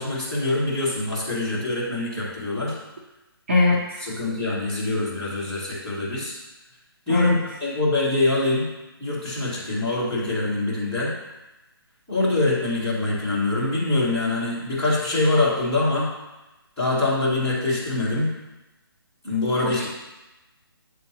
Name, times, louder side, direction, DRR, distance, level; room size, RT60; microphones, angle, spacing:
voice 1, 0.0-2.8 4.0-6.3 7.1-8.7 9.0-11.1 12.1-16.1 16.8-18.3 19.2-19.9, left 2 dB, 5° left, -14 dB, 1.7 m, -24 dB
voice 2, 3.5-4.1 7.1-7.4 19.6-19.9, left 3 dB, 30° right, -4 dB, 0.7 m, -21 dB
9.0 x 3.7 x 2.8 m, 1.0 s
hypercardioid pair, 170°, 13 cm